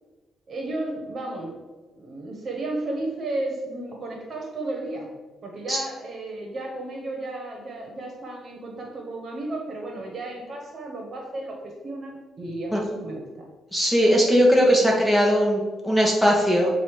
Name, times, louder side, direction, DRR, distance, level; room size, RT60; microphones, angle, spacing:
voice 1, 0.5-1.6 2.0-5.1 5.4-13.4, right 2 dB, 45° right, 0 dB, 1.4 m, -33 dB
voice 2, 13.7-16.7, equal, 5° left, -3 dB, 1.4 m, -19 dB
7.5 x 2.9 x 4.9 m, 1.2 s
cardioid pair, 90°, 0 cm